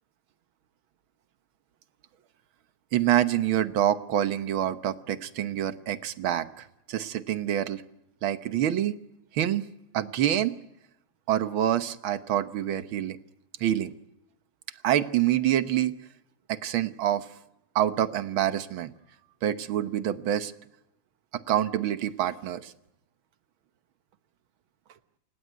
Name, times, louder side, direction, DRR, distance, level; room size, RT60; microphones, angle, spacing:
voice 1, 2.9-7.8 8.2-8.9 9.3-9.7 9.9-10.6 11.3-13.2 13.6-13.9 14.8-16.0 16.5-17.3 17.8-18.9 19.4-20.5 21.3-22.7, right 11 dB, 70° right, 12 dB, 1.8 m, -26 dB
29.0 x 16.5 x 9.2 m, 0.85 s
omnidirectional pair, 2.4 m